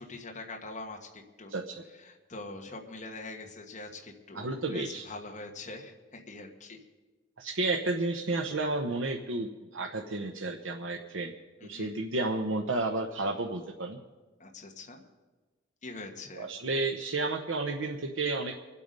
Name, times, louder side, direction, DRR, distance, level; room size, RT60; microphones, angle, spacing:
voice 1, 0.0-1.5 2.0-6.8 11.6-11.9 14.4-15.0 15.8-16.5, left 2 dB, 40° left, 1 dB, 1.5 m, -43 dB
voice 2, 1.5-1.8 4.3-5.1 7.4-11.3 11.6-14.0 16.3-18.5, right 2 dB, 85° right, 3 dB, 0.9 m, -32 dB
25.0 x 8.5 x 5.3 m, 1.2 s
head